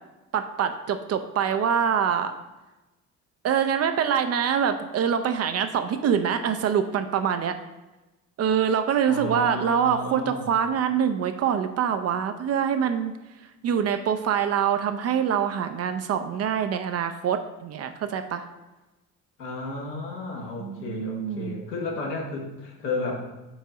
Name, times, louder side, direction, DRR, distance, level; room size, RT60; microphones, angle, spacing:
voice 1, 0.3-2.3 3.4-7.6 8.4-13.1 13.6-18.5 20.6-21.6, right 8 dB, 35° right, 8 dB, 0.5 m, -25 dB
voice 2, 9.1-10.6 19.4-23.3, left 2 dB, 80° left, -1 dB, 1.3 m, -33 dB
4.8 x 4.4 x 5.1 m, 1.1 s
figure-of-eight pair, 55°, 48 cm